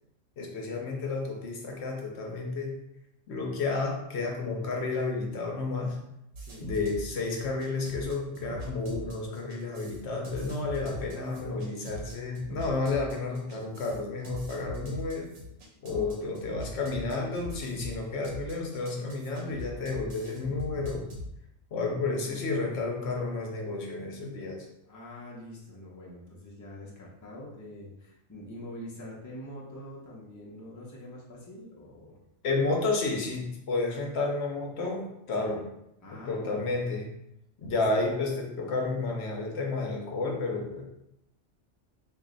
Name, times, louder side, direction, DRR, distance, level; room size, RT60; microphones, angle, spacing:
voice 1, 0.4-2.8 3.3-6.0 6.6-15.3 15.8-21.1 21.7-24.7 32.4-35.6 36.1-37.1 37.6-40.9, left 3 dB, 65° left, 1 dB, 0.9 m, -31 dB
sound 1, 6.3-21.3, equal, 75° right, 1.1 m, -41 dB
voice 2, 6.4-6.7 11.3-11.7 15.8-16.7 21.9-22.0 24.8-32.2 35.3-35.6 36.0-36.7 37.7-38.0, left 1 dB, 20° left, -4 dB, 0.6 m, -45 dB
3.1 x 2.6 x 3.8 m, 0.81 s
omnidirectional pair, 1.2 m